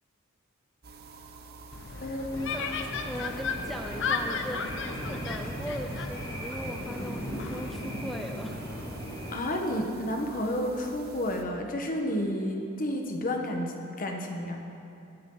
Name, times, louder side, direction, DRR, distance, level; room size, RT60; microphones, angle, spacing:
sound 1, 0.8-11.4, right 3 dB, 50° right, 0.8 m, -48 dB
sound 2, 1.7-7.7, left 5 dB, 60° left, 0.7 m, -35 dB
voice 1, 2.0-2.6 9.3-14.6, left 1 dB, 40° left, 2 dB, 1.2 m, -31 dB
sound 3, 2.3-9.3, equal, 20° left, 2.9 m, -37 dB
voice 2, 2.5-8.6, equal, ahead, 2 dB, 0.4 m, -39 dB
16.0 x 10.5 x 3.9 m, 2.8 s
head